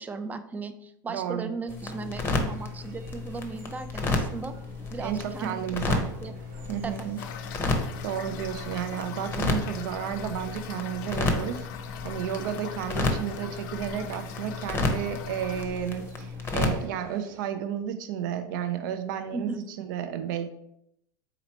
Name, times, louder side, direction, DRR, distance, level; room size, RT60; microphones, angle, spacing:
voice 1, 0.0-4.5 4.9-6.3 6.8-7.1 19.3-19.6, right 4 dB, 15° right, 10 dB, 0.4 m, -37 dB
voice 2, 1.1-1.5 5.0-6.1 6.7-7.2 8.0-11.7 12.0-20.5, right 9 dB, 70° right, 9 dB, 0.5 m, -32 dB
sound 1, 1.7-16.9, left 3 dB, 20° left, 0.7 m, -32 dB
sound 2, 1.8-17.5, right 2 dB, 55° right, 0.9 m, -51 dB
Toilet flush / Fill (with liquid), 7.2-15.6, left 8 dB, 70° left, 0.5 m, -42 dB
4.0 x 2.8 x 4.3 m, 0.77 s
supercardioid pair, 115°, 11 cm